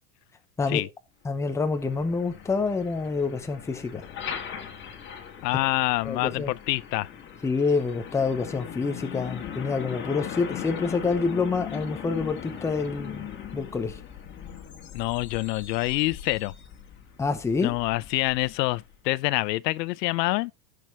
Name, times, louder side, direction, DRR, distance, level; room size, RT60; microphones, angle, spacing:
voice 1, 1.2-4.0 6.0-6.5 7.4-14.0 17.2-17.8, left 4 dB, 5° left, 0.7 m, -27 dB
Truck, 1.3-19.0, left 8 dB, 25° left, 1.7 m, -40 dB
voice 2, 5.4-7.1 14.9-16.5 17.6-20.5, left 20 dB, 90° left, 0.7 m, -26 dB
15.0 x 6.7 x 3.2 m
supercardioid pair, 170°, 48 cm